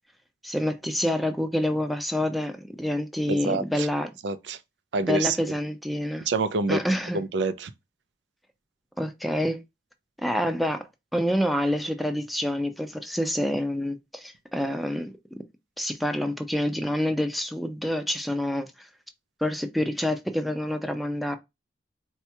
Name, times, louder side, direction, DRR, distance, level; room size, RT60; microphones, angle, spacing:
voice 1, 0.4-4.1 5.1-6.3 6.7-7.2 9.0-9.6 10.2-10.9 11.1-15.1 15.8-18.9 19.4-21.4, left 1 dB, ahead, 0.4 m, -27 dB
voice 2, 3.3-3.9 4.2-4.6 4.9-5.4 6.3-6.8 7.1-7.7, right 3 dB, 75° right, 0.4 m, -26 dB
4.2 x 2.3 x 2.9 m
head